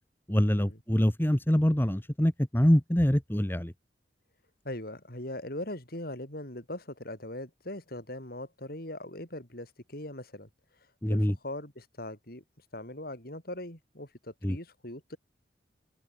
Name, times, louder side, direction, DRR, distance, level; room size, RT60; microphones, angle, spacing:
voice 1, 0.3-3.7 11.0-11.3 14.4-14.6, equal, 10° left, 1.3 m, -25 dB
voice 2, 4.6-10.5 11.1-12.4 12.7-15.2, left 1 dB, 55° left, 7.4 m, -40 dB
head